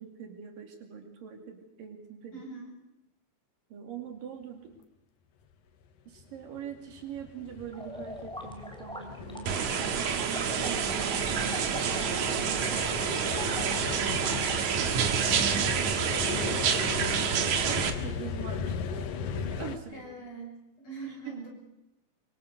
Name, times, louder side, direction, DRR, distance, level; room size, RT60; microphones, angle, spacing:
voice 1, 0.0-2.4 3.7-4.8 6.1-20.1 21.0-21.5, right 7 dB, 85° right, 4 dB, 4.3 m, -44 dB
voice 2, 2.3-2.7 9.5-9.8 19.9-21.5, right 3 dB, 50° left, -2 dB, 9.0 m, -43 dB
sound 1, 6.2-19.8, left 7 dB, 85° left, 3.0 m, -37 dB
sound 2, 7.7-14.7, equal, ahead, 2.6 m, -42 dB
sound 3, 9.5-17.9, right 7 dB, 65° right, 2.8 m, -28 dB
25.0 x 23.5 x 6.7 m, 0.86 s
omnidirectional pair, 3.8 m